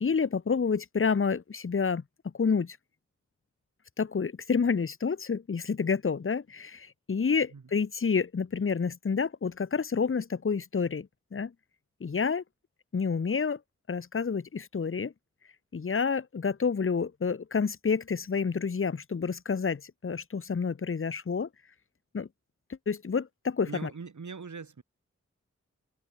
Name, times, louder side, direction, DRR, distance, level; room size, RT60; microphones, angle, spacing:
voice 1, 0.0-2.0 2.3-2.8 4.0-11.5 12.0-12.4 12.9-13.6 13.9-15.1 15.7-21.5 22.1-22.3 22.9-23.9, left 5 dB, 45° left, 0.9 m, -29 dB
voice 2, 23.7-24.8, right 5 dB, 80° right, 6.2 m, -41 dB
cardioid pair, 40°, 29 cm